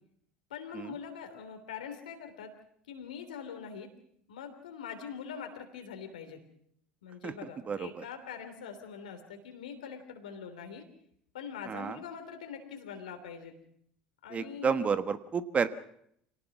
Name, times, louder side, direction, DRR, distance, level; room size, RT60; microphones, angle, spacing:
voice 1, 0.5-2.5 2.9-3.9 4.3-6.4 7.0-10.8 11.3-13.5 14.2-14.9, left 7 dB, 80° left, 6 dB, 3.4 m, -43 dB
voice 2, 7.7-8.0 11.7-12.0 14.3-15.7, right 6 dB, 30° right, 11 dB, 1.3 m, -31 dB
26.0 x 18.5 x 6.1 m, 0.71 s
hypercardioid pair, 70°, 4 cm